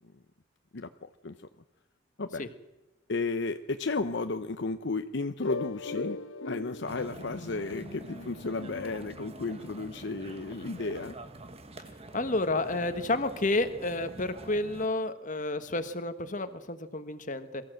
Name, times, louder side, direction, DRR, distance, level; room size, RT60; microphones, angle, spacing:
voice 1, 0.7-1.5 2.2-2.5 3.1-6.2 6.5-11.2, left 3 dB, 60° left, 9 dB, 0.7 m, -33 dB
sound 1, 5.4-10.0, left 3 dB, 85° left, 1.1 m, -40 dB
sound 2, 6.9-14.9, right 2 dB, 30° right, 1.3 m, -47 dB
voice 2, 12.1-17.6, left 2 dB, 40° left, 10 dB, 1.4 m, -30 dB
23.0 x 15.0 x 7.7 m, 1.1 s
head